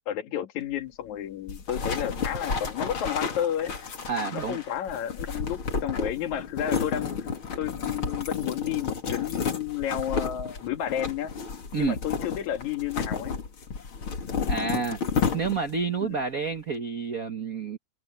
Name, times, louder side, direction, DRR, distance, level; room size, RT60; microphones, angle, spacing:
voice 1, 0.1-3.9 4.2-7.3 7.6-11.3 11.8-13.4 16.0-16.2, left 10 dB, 70° left, 3.0 m, -31 dB
sound 1, 1.5-15.8, left 5 dB, 45° left, 3.0 m, -31 dB
voice 2, 4.1-4.6 11.7-12.0 14.5-15.0 15.3-17.8, right 5 dB, 55° right, 0.9 m, -29 dB
omnidirectional pair, 3.6 m